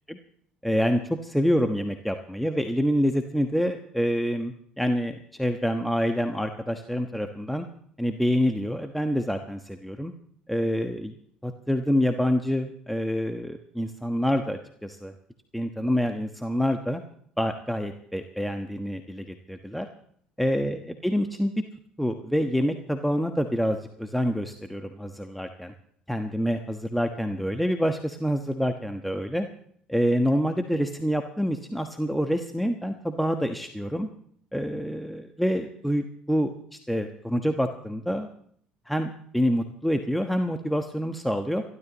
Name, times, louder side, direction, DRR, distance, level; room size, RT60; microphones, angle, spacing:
voice 1, 0.6-7.7 8.0-10.1 10.5-11.2 11.4-15.1 15.5-17.0 17.4-19.9 20.4-21.6 22.0-25.7 26.1-29.5 29.9-34.1 34.5-36.5 36.9-38.3 38.9-41.6, equal, ahead, 6 dB, 1.3 m, -27 dB
29.5 x 13.0 x 3.1 m, 0.64 s
hypercardioid pair, 65°, 4 cm